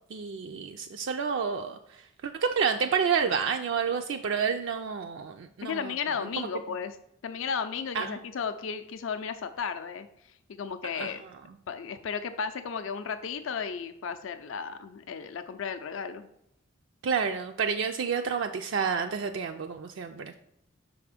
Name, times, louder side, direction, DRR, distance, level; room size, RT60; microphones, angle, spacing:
voice 1, 0.1-5.9 7.9-8.2 10.9-11.1 17.0-20.3, right 6 dB, 60° right, 5 dB, 0.3 m, -29 dB
voice 2, 5.6-7.0 7.2-10.1 10.5-11.2 11.7-16.3, left 6 dB, 65° left, 8 dB, 0.4 m, -34 dB
5.9 x 3.5 x 4.9 m, 0.75 s
head